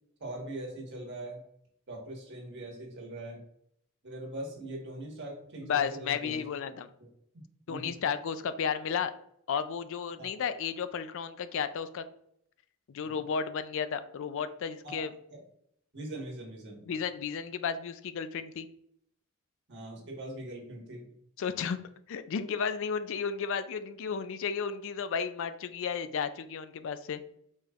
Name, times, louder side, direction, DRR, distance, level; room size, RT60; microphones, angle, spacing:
voice 1, 0.2-1.4 1.9-3.4 4.0-6.4 7.0-7.1 7.7-8.0 10.2-10.3 13.0-13.2 14.8-15.0 15.3-15.4 15.9-16.9 19.7-21.1, right 1 dB, 55° right, 0 dB, 1.5 m, -41 dB
voice 2, 5.6-6.9 7.7-9.1 9.5-12.1 12.9-15.1 16.9-18.7 21.4-21.8 22.1-27.2, left 6 dB, 60° left, 12 dB, 0.4 m, -33 dB
5.0 x 4.4 x 2.4 m, 0.71 s
head